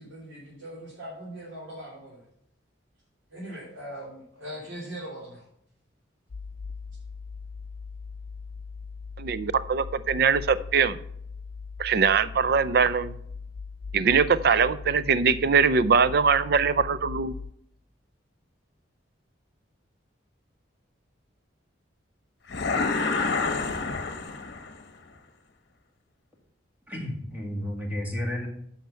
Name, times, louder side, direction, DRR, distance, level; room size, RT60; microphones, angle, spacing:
voice 1, 0.0-2.2 3.3-5.4, right 1 dB, 85° right, 3.2 m, -40 dB
sound 1, 6.3-17.5, left 4 dB, 40° left, 0.3 m, -39 dB
voice 2, 9.2-11.0 11.8-13.2 13.9-17.3, right 5 dB, 55° right, 0.4 m, -22 dB
sound 2, 22.5-24.8, left 4 dB, 60° left, 1.1 m, -28 dB
voice 3, 26.9-28.5, left 1 dB, 10° right, 2.1 m, -32 dB
9.3 x 5.8 x 5.6 m
head